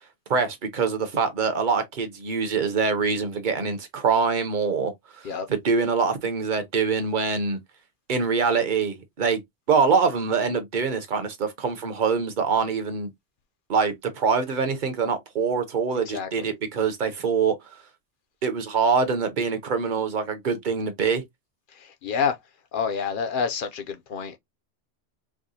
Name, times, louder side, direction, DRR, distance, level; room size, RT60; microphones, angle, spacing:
voice 1, 0.3-4.9 5.5-7.6 8.1-9.4 9.7-13.1 13.7-17.6 18.4-21.2, right 5 dB, 45° right, 0.9 m, -24 dB
voice 2, 16.1-16.5 21.7-22.4 22.7-24.4, left 6 dB, 55° left, 0.7 m, -28 dB
4.8 x 2.2 x 2.6 m
omnidirectional pair, 1.2 m